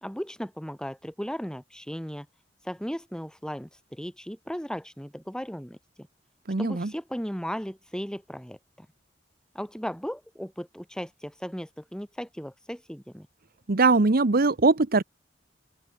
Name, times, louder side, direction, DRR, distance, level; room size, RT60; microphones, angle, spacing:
voice 1, 0.0-2.3 2.6-5.8 6.6-8.9 9.5-13.3, equal, 5° left, 4.1 m, -36 dB
voice 2, 6.5-6.9 13.7-15.0, right 3 dB, 55° right, 0.9 m, -21 dB
open air
head